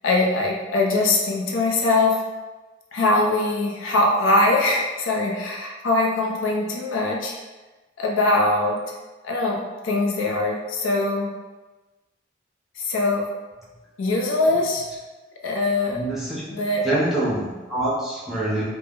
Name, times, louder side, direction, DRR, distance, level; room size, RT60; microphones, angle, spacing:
voice 1, 0.0-2.2 2.9-7.3 8.0-8.8 9.2-11.3 12.8-13.3 14.0-14.8 15.4-16.0 16.5-16.9, left 2 dB, 80° left, -1 dB, 0.4 m, -22 dB
voice 2, 15.9-16.4 16.8-18.6, right 1 dB, ahead, -8 dB, 0.6 m, -25 dB
2.0 x 2.0 x 3.4 m, 1.2 s
head